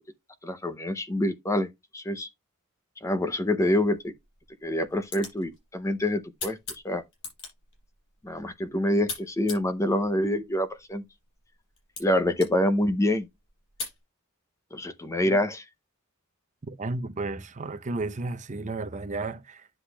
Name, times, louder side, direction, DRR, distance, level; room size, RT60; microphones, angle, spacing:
voice 1, 0.4-1.7 1.9-2.3 3.0-4.1 4.6-6.6 6.8-7.0 8.2-11.0 12.0-13.3 14.7-15.6, left 1 dB, 15° left, 0.6 m, -26 dB
sound 1, 3.9-14.0, left 4 dB, 65° left, 6.5 m, -44 dB
voice 2, 16.6-19.7, right 2 dB, 35° right, 0.7 m, -33 dB
9.9 x 7.7 x 2.2 m
head